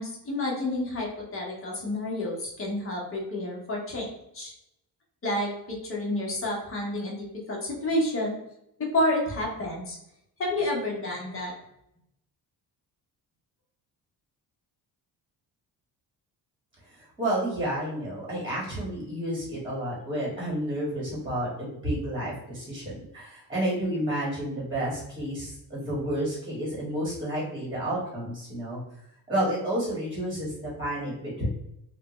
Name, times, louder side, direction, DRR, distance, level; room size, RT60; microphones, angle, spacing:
voice 1, 0.0-4.5 5.2-8.3 8.9-10.0 10.4-11.5, left 1 dB, 35° left, -2 dB, 1.1 m, -30 dB
voice 2, 17.2-28.8 29.3-30.5 30.8-31.5, right 1 dB, 15° right, -5 dB, 1.4 m, -30 dB
3.4 x 2.3 x 3.0 m, 0.81 s
cardioid pair, 150°, 39 cm